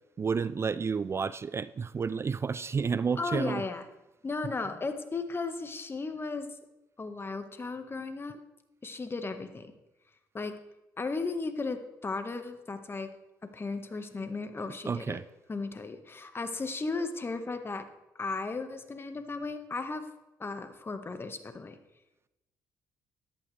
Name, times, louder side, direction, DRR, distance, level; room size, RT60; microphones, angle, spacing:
voice 1, 0.2-3.6 14.8-15.2, right 5 dB, 35° right, 16 dB, 0.4 m, -30 dB
voice 2, 3.2-3.8 4.2-6.5 7.0-8.4 8.8-9.7 10.3-10.5 11.0-13.1 13.5-15.2 15.5-17.9 18.1-20.1 20.4-21.8, left 3 dB, 30° left, 8 dB, 1.6 m, -35 dB
14.0 x 12.0 x 3.4 m, 0.96 s
hypercardioid pair, 55°, 8 cm